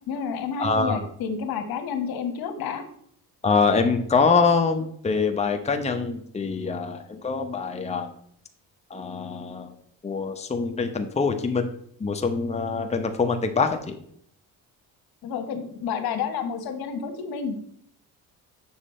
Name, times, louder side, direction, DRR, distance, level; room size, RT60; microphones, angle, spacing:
voice 1, 0.1-2.8 15.2-17.6, left 6 dB, 80° left, 7 dB, 1.3 m, -30 dB
voice 2, 0.6-1.0 3.4-8.1 8.9-9.7 10.0-11.7 12.0-13.9, left 4 dB, 20° left, 5 dB, 0.8 m, -24 dB
7.3 x 6.1 x 4.3 m, 0.65 s
cardioid pair, 105°, 36 cm